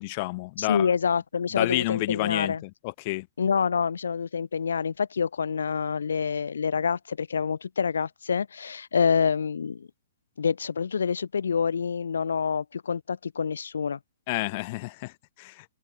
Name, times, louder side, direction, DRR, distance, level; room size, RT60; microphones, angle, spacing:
voice 1, 0.0-0.9 1.5-3.3 14.3-15.1 15.4-15.7, left 24 dB, 40° left, 3.6 m, -29 dB
voice 2, 0.6-2.6 3.4-9.9 10.4-14.0, left 6 dB, 80° left, 4.2 m, -27 dB
hypercardioid pair, 130°, 0 cm